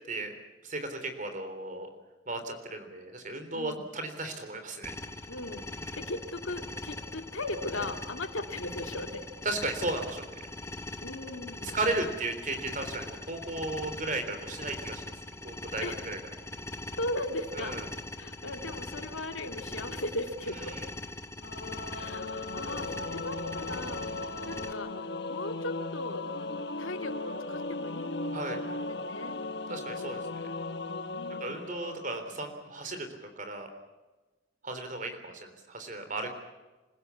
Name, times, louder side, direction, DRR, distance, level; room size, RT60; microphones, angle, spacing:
voice 1, 0.6-1.9 2.3-4.9 5.8-6.0 9.4-10.4 11.6-15.1 15.4-16.2 17.5-17.8 20.7-20.8 28.3-28.6 29.7-30.5 31.4-33.7 34.6-36.3, right 2 dB, 40° right, 7 dB, 3.7 m, -35 dB
voice 2, 3.5-3.8 5.3-9.3 11.0-11.8 15.8-16.0 17.0-17.8 18.2-20.8 21.9-24.0 24.4-24.9 25.3-26.3 26.8-29.4 31.1-31.7, left 2 dB, 75° left, 6 dB, 2.1 m, -38 dB
sound 1, 4.8-24.7, left 2 dB, 15° left, 0.9 m, -41 dB
Singing / Musical instrument, 21.4-32.7, left 2 dB, 55° left, 1.1 m, -37 dB
27.5 x 16.0 x 8.4 m, 1.2 s
head